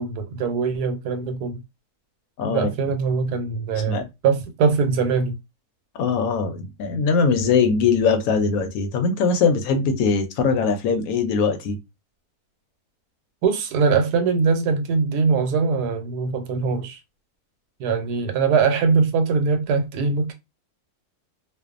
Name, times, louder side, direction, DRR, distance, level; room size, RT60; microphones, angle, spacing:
voice 1, 0.0-1.6 2.5-5.3 13.4-17.0 17.8-20.3, right 5 dB, 85° right, 1.2 m, -22 dB
voice 2, 2.4-2.7 3.9-4.0 5.9-11.8, left 5 dB, 75° left, 1.0 m, -21 dB
2.5 x 2.2 x 2.4 m
omnidirectional pair, 1.6 m